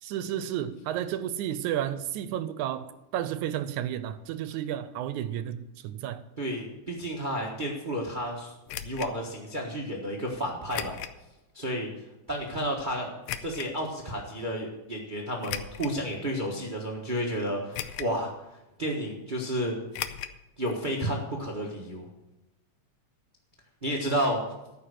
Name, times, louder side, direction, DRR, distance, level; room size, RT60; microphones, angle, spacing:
voice 1, 0.0-6.2, right 11 dB, 85° right, 13 dB, 2.0 m, -32 dB
voice 2, 6.4-8.5 8.8-11.0 11.5-11.9 12.3-13.1 13.4-18.3 18.8-19.8 20.6-22.1 23.8-24.4, equal, 65° right, 0 dB, 0.4 m, -31 dB
sound 1, 8.7-9.1 10.7-11.2 11.7-11.8 13.3-13.7 15.4-16.0 16.6-16.7 17.7-18.2 18.5-18.6 19.9-20.4 20.7-20.8 21.0-21.1, left 11 dB, 80° left, 1.5 m, -36 dB
14.0 x 5.9 x 6.6 m, 0.95 s
omnidirectional pair, 3.5 m